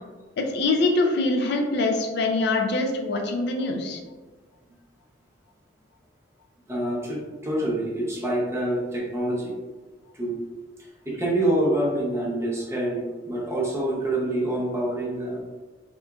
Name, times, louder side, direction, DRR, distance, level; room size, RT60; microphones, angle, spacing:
voice 1, 0.4-4.0, left 2 dB, 60° left, 3 dB, 0.3 m, -24 dB
voice 2, 6.7-9.5 10.1-10.4 10.8-15.4, right 1 dB, 15° right, -4 dB, 0.6 m, -26 dB
2.9 x 2.3 x 2.3 m, 1.3 s
head